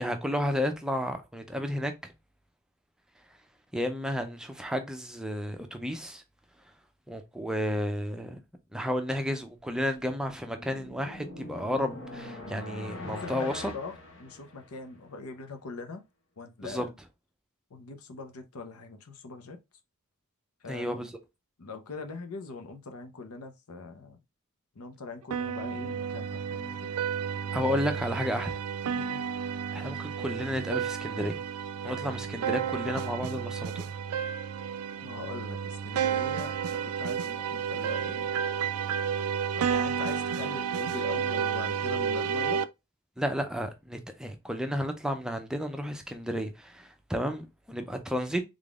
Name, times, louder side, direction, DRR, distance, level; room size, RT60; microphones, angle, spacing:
voice 1, 0.0-2.1 3.7-6.2 7.1-8.4 8.7-13.7 16.6-16.9 20.7-21.1 27.5-28.6 29.7-31.4 31.8-33.9 43.2-48.4, equal, 5° right, 0.5 m, -32 dB
sound 1, 10.0-14.9, left 1 dB, 60° left, 1.1 m, -43 dB
voice 2, 13.0-16.0 16.4-16.9 17.7-19.6 20.6-21.1 21.6-24.2 24.8-26.9 28.9-29.2 35.0-38.3 39.6-42.6, left 3 dB, 85° left, 0.7 m, -42 dB
sound 2, 25.3-42.6, right 7 dB, 90° right, 0.4 m, -31 dB
3.7 x 3.6 x 2.4 m
head